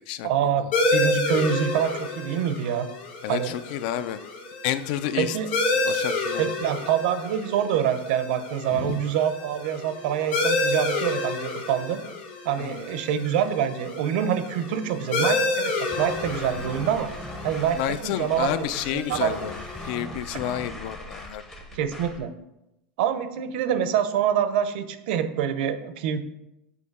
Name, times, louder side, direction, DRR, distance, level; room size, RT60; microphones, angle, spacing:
voice 1, 0.2-2.9 3.3-3.6 5.1-5.5 6.4-12.0 12.4-17.1 17.4-17.8 18.0-18.7 18.9-19.3 21.7-22.3 23.0-26.2, right 9 dB, 60° right, 10 dB, 0.6 m, -26 dB
sound 1, 0.7-19.9, left 2 dB, 75° left, 1.8 m, -30 dB
voice 2, 3.2-4.2 4.6-5.4 5.7-6.5 8.7-9.0 12.6-12.8 17.8-19.6 19.8-21.4, left 11 dB, 50° left, 14 dB, 0.3 m, -30 dB
sound 2, 15.9-22.2, left 1 dB, 10° left, 0.6 m, -39 dB
6.5 x 2.8 x 5.3 m, 0.90 s
supercardioid pair, 170°, 6 cm